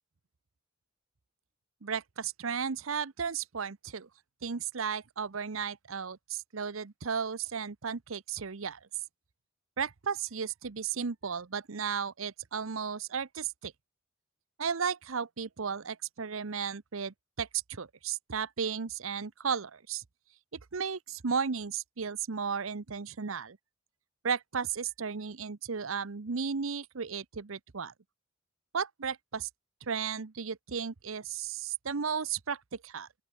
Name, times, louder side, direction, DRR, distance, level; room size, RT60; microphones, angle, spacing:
voice 1, 1.8-4.1 4.4-8.8 9.8-13.7 14.6-20.0 20.7-23.6 24.2-27.9 28.7-29.5 29.8-33.1, right 6 dB, 90° right, 0.8 m, -34 dB
open air
head